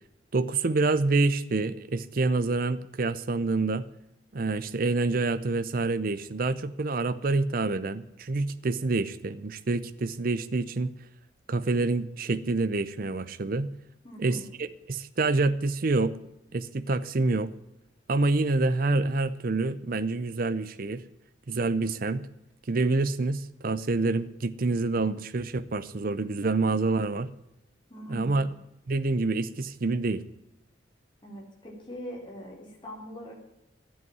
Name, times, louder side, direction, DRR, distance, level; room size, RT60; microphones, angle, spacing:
voice 1, 0.3-3.8 4.3-10.9 11.5-13.7 14.2-16.1 16.5-17.5 18.1-21.0 21.5-22.2 22.7-27.3 28.1-28.5 28.9-30.2, right 3 dB, 50° right, 13 dB, 0.6 m, -27 dB
voice 2, 14.0-14.5 27.9-28.5 31.2-33.3, equal, 25° left, -2 dB, 3.3 m, -42 dB
12.5 x 8.0 x 9.1 m, 0.87 s
head